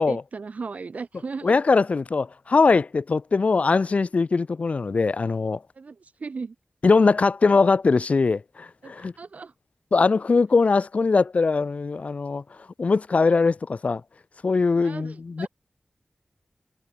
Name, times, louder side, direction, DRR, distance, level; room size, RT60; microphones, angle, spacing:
voice 1, 0.0-1.5 5.7-6.6 8.8-9.5 14.8-15.5, right 4 dB, 80° right, 7.4 m, -36 dB
voice 2, 1.4-5.6 6.8-9.1 9.9-12.4 12.8-14.0 14.4-15.5, left 4 dB, 70° left, 1.7 m, -21 dB
wide cardioid pair, 90°, 2 cm